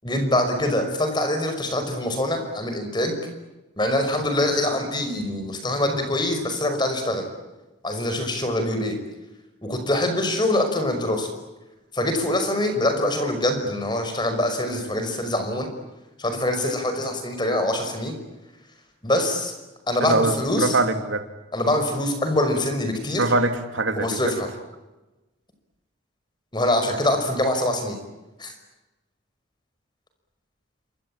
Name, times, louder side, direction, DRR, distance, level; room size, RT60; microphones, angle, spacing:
voice 1, 0.0-3.2 3.8-7.2 7.8-9.0 9.6-11.3 11.9-15.7 16.2-18.2 19.0-19.5 19.9-20.8 21.5-23.3 24.0-24.5 26.5-28.0 28.4-28.5, left 1 dB, 20° left, 7 dB, 5.6 m, -24 dB
voice 2, 20.0-21.2 23.2-24.3, right 2 dB, 80° right, 7 dB, 2.7 m, -23 dB
27.5 x 24.0 x 8.8 m, 1.1 s
head